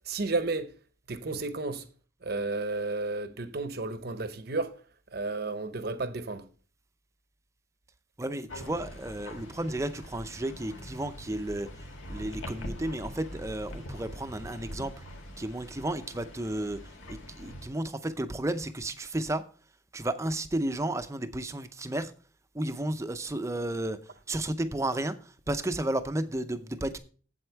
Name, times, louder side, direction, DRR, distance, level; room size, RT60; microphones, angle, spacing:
voice 1, 0.1-0.7 1.1-1.8 2.2-4.8 5.1-6.5, right 3 dB, 50° right, 0.8 m, -32 dB
voice 2, 8.2-14.9 15.4-19.5 19.9-22.1 22.5-24.0 24.3-27.0, right 1 dB, 15° right, 0.5 m, -33 dB
sound 1, 8.5-17.7, equal, 75° left, 1.8 m, -43 dB
7.9 x 7.9 x 4.5 m
head